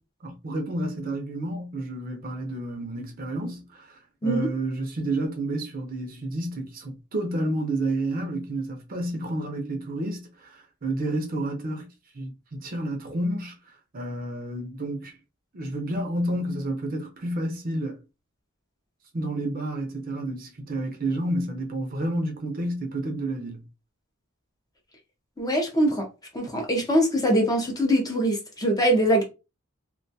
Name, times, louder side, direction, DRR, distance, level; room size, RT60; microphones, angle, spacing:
voice 1, 0.2-11.9 12.1-13.6 13.9-15.2 15.5-18.0 19.1-23.6, right 1 dB, 40° right, 0.5 m, -30 dB
voice 2, 25.4-26.1 26.3-29.2, right 1 dB, 15° left, 0.5 m, -23 dB
2.3 x 2.2 x 2.6 m
head